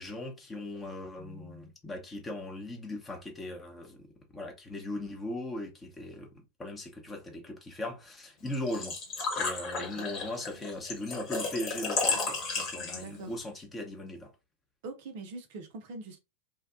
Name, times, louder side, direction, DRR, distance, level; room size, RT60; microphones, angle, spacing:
voice 1, 0.0-6.3 6.6-9.0 9.4-14.3, left 1 dB, 15° left, 0.8 m, -39 dB
Engine / Trickle dribble / Fill (with liquid), 8.5-13.3, left 4 dB, 35° left, 1.1 m, -33 dB
voice 2, 9.8-10.1 13.0-13.3 14.8-16.2, right 3 dB, 50° right, 0.5 m, -43 dB
2.7 x 2.2 x 2.4 m
figure-of-eight pair, 90°, 0 cm